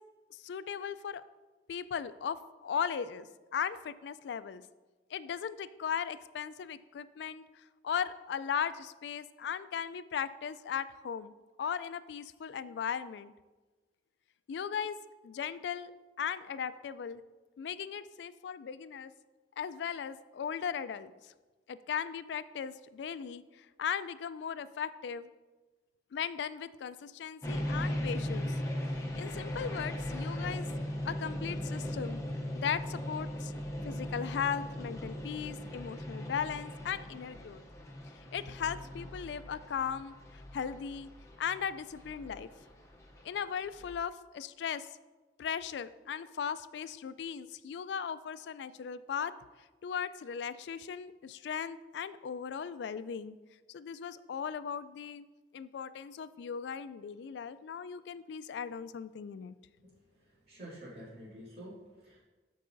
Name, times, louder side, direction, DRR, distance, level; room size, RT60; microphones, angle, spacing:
voice 1, 0.4-1.2 1.7-3.3 3.5-4.6 5.1-7.4 7.8-11.3 11.6-13.3 14.5-15.0 15.2-15.9 16.2-17.2 17.6-19.1 19.6-21.3 21.7-25.3 26.1-28.5 29.2-30.7 31.0-32.2 32.5-33.5 33.9-37.6 38.3-40.1 40.5-41.1 41.4-42.5 43.2-44.9 45.4-49.3 49.8-53.4 53.7-55.2 55.5-59.5, left 7 dB, 70° left, 15 dB, 0.3 m, -37 dB
sound 1, 27.4-44.0, left 1 dB, 15° left, 0.6 m, -38 dB
voice 2, 59.8-62.2, equal, 55° right, -9 dB, 2.6 m, -49 dB
13.0 x 4.7 x 2.6 m, 1.2 s
head